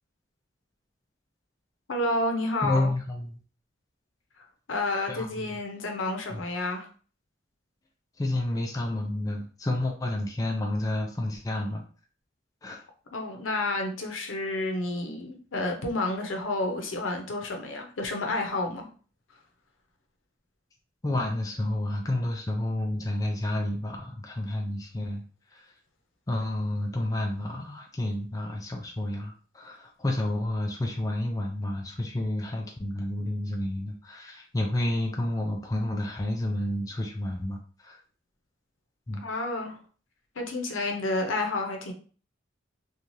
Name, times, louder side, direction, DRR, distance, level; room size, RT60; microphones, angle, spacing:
voice 1, 1.9-2.9 4.4-6.9 13.1-18.9 39.2-39.8 40.4-41.9, left 2 dB, 80° left, 0.7 m, -30 dB
voice 2, 2.6-3.4 5.1-5.5 6.3-6.4 8.2-11.8 12.6-12.8 21.0-25.2 25.5-25.6 26.3-38.0 39.1-39.2, left 1 dB, 20° left, 0.3 m, -30 dB
3.0 x 2.3 x 2.6 m
head